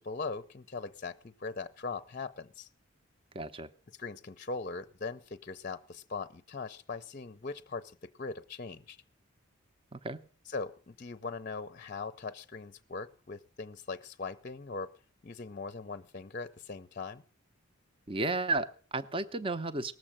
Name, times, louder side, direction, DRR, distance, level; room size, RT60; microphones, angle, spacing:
voice 1, 0.0-2.7 4.0-9.0 10.5-14.9 15.2-17.2, left 4 dB, 40° left, 12 dB, 0.6 m, -40 dB
voice 2, 3.3-3.7 9.9-10.2 18.1-19.9, right 2 dB, 25° right, 9 dB, 0.7 m, -33 dB
19.0 x 7.5 x 8.7 m, 0.43 s
head